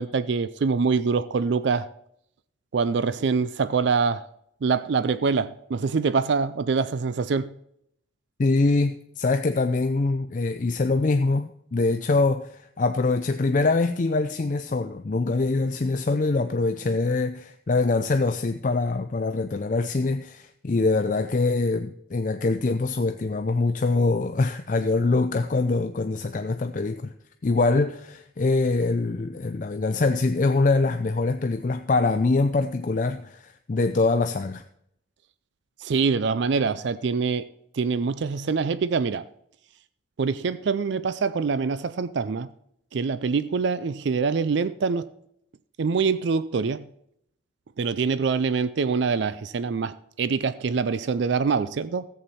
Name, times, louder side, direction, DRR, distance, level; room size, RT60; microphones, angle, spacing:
voice 1, 0.0-1.9 2.7-4.2 4.6-7.5 35.8-37.5 37.7-39.3 40.2-42.5 42.9-45.1 45.8-46.9 47.8-52.1, right 5 dB, 65° right, 0.4 m, -25 dB
voice 2, 8.4-27.1 27.4-34.6, left 3 dB, 40° left, 0.4 m, -24 dB
14.0 x 7.9 x 4.2 m
head